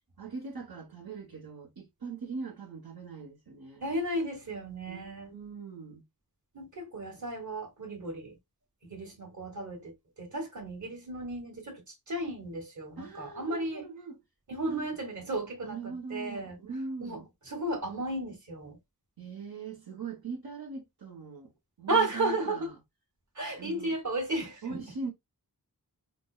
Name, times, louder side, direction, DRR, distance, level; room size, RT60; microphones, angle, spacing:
voice 1, 0.2-3.8 4.9-6.1 13.0-14.2 14.7-14.9 15.6-17.3 19.2-21.5 21.8-22.7 23.6-23.9 24.6-25.1, right 4 dB, 70° right, 1.2 m, -41 dB
voice 2, 3.8-5.3 6.5-8.4 8.8-13.8 14.5-16.6 17.0-18.8 21.9-22.7 23.3-24.9, right 2 dB, 50° right, 1.4 m, -34 dB
5.1 x 2.1 x 2.4 m
wide cardioid pair, 60°, 38 cm